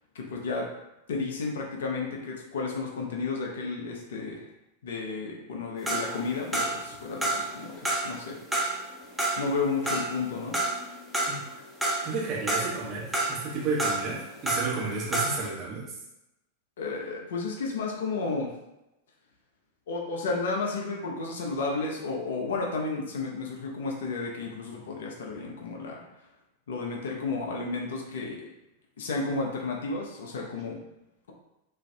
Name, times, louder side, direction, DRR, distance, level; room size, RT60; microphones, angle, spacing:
voice 1, 0.1-0.7 1.1-4.5 4.8-8.4 9.4-10.6 16.8-18.5 19.9-26.0 26.7-28.4 29.0-30.8, left 3 dB, 60° left, -1 dB, 0.5 m, -32 dB
sound 1, 5.9-6.9 7.2-8.2 8.5-11.5 11.8-12.8 13.1-14.8 15.1-15.5, right 2 dB, 5° right, 0.6 m, -29 dB
voice 2, 12.0-16.0, right 4 dB, 30° right, -5 dB, 1.0 m, -32 dB
2.5 x 2.4 x 3.3 m, 0.94 s
figure-of-eight pair, 90°, 0 cm